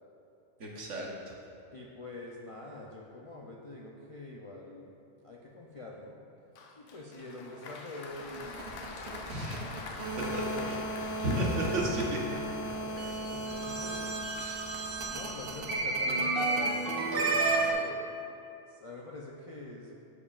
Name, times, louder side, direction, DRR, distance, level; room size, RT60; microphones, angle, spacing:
voice 1, 0.6-1.1 9.3-9.5 10.1-10.4 10.7-10.8 11.2-12.2 14.4-15.0, right 1 dB, 80° right, -2 dB, 1.4 m, -33 dB
voice 2, 1.7-4.9 5.2-6.2 6.8-9.2 10.1-10.8 12.7-14.1 15.1-18.1 18.7-19.9, left 2 dB, 50° left, -3 dB, 0.4 m, -45 dB
Applause, 6.6-13.7, left 3 dB, 90° left, 1.0 m, -45 dB
sound 1, 8.1-17.7, right 2 dB, 55° right, 0.9 m, -32 dB
12.0 x 5.1 x 2.4 m, 2.7 s
omnidirectional pair, 1.3 m